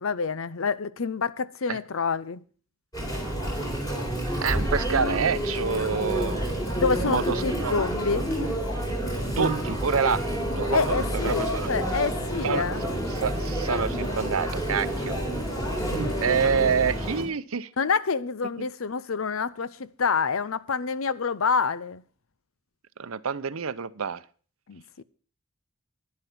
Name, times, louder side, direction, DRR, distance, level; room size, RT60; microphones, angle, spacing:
voice 1, 0.0-2.4 6.8-8.3 10.7-12.8 15.8-16.0 16.4-16.5 17.8-22.0 24.7-25.0, left 5 dB, 80° left, 0.7 m, -27 dB
Chatter, 2.9-17.2, right 1 dB, 20° left, 3.9 m, -29 dB
voice 2, 4.4-6.5 7.0-7.8 9.4-10.2 10.6-11.7 12.4-12.6 13.2-15.2 16.2-17.7 23.0-24.2, right 6 dB, 90° right, 0.7 m, -27 dB
11.5 x 10.5 x 6.0 m
head